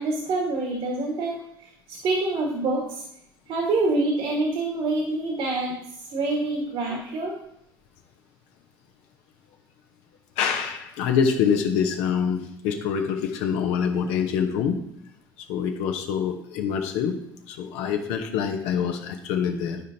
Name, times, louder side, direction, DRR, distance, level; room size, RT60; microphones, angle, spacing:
voice 1, 0.0-1.4 1.9-3.0 3.5-5.7 6.1-7.3 14.0-14.2, right 2 dB, 55° right, -1 dB, 1.7 m, -26 dB
voice 2, 10.4-14.8 15.5-17.2 17.5-19.8, left 7 dB, 65° left, 4 dB, 0.9 m, -25 dB
11.0 x 5.1 x 2.9 m, 0.75 s
hypercardioid pair, 65°, 12 cm